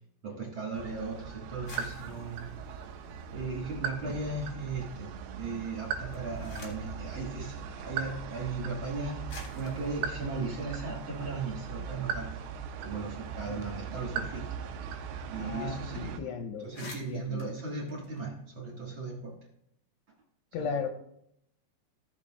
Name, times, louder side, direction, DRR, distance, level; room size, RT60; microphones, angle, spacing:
voice 1, 0.2-2.5 3.3-5.1 5.4-9.2 9.5-12.3 12.8-14.5 15.3-16.3 16.6-19.3 20.6-20.7, right 3 dB, 60° right, -3 dB, 1.3 m, -37 dB
sound 1, 0.7-16.2, right 6 dB, 85° right, 2.9 m, -39 dB
sound 2, 1.5-4.1 4.4-5.1 5.9-7.0 8.0-8.1 8.9-9.0 9.3-11.6 12.0-12.1 12.3-14.9 15.2-15.3 15.6-15.8 16.2-16.3 16.5-18.8, left 2 dB, 45° left, 1.8 m, -52 dB
voice 2, 15.3-17.5 20.5-20.9, left 6 dB, 80° left, 3 dB, 2.7 m, -37 dB
17.0 x 6.6 x 2.4 m, 0.74 s
omnidirectional pair, 4.9 m